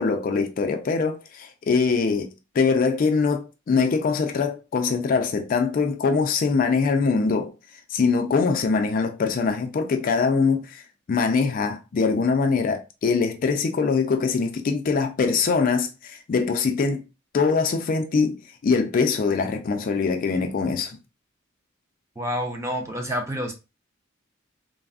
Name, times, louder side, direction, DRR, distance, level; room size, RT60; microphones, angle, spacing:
voice 1, 0.0-2.3 2.5-7.5 7.9-10.8 11.1-17.0 17.3-21.0, left 4 dB, 45° left, 0.3 m, -23 dB
voice 2, 22.2-23.5, equal, 15° right, 0.5 m, -28 dB
3.3 x 2.0 x 2.3 m
head